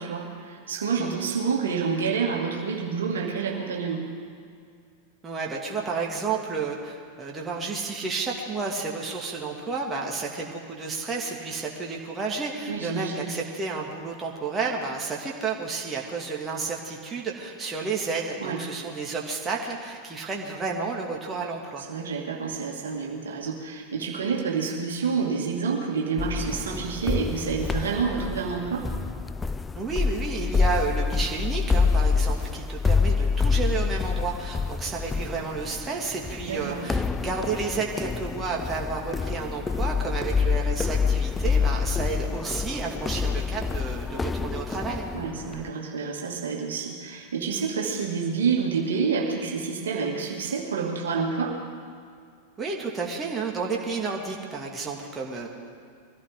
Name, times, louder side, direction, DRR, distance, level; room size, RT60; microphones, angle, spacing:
voice 1, 0.0-4.0 12.7-13.3 18.4-18.6 21.9-28.9 36.5-36.8 45.1-51.6, right 5 dB, 65° right, 0 dB, 2.4 m, -28 dB
voice 2, 5.2-21.9 29.7-45.1 52.6-55.5, right 4 dB, 20° right, -1 dB, 2.3 m, -31 dB
sound 1, 26.2-45.7, left 5 dB, 15° left, 0.4 m, -27 dB
24.0 x 16.0 x 3.8 m, 2.2 s
figure-of-eight pair, 90°, 0 cm